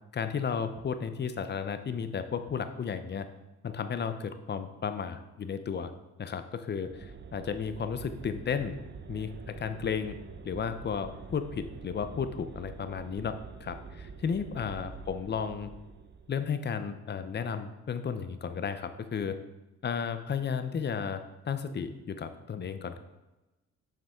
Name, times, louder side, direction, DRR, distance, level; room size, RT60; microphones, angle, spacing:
voice 1, 0.1-3.3 3.6-5.9 6.2-8.7 9.1-10.2 10.4-13.4 13.6-15.7 16.3-19.4 19.8-23.0, left 6 dB, 35° left, 10 dB, 0.7 m, -33 dB
sound 1, 6.9-16.5, right 5 dB, 35° right, 0.7 m, -46 dB
7.5 x 5.7 x 3.6 m, 1.0 s
cardioid pair, 90°, 30 cm